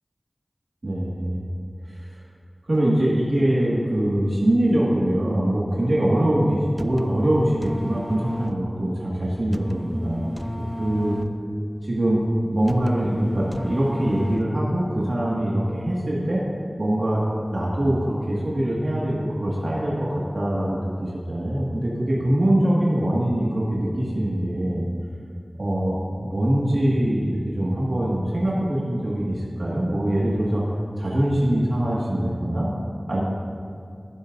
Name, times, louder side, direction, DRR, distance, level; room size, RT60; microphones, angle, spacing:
voice 1, 0.8-1.5 2.0-2.1 2.7-10.3 10.8-11.2 11.8-16.4 16.8-17.2 17.5-24.8 25.6-30.6 31.0-32.7 33.1-33.2, right 1 dB, 70° right, -6 dB, 1.9 m, -23 dB
sound 1, 6.8-14.8, equal, 5° left, 0.5 m, -34 dB
15.0 x 11.5 x 2.6 m, 2.3 s
wide cardioid pair, 60°, 0 cm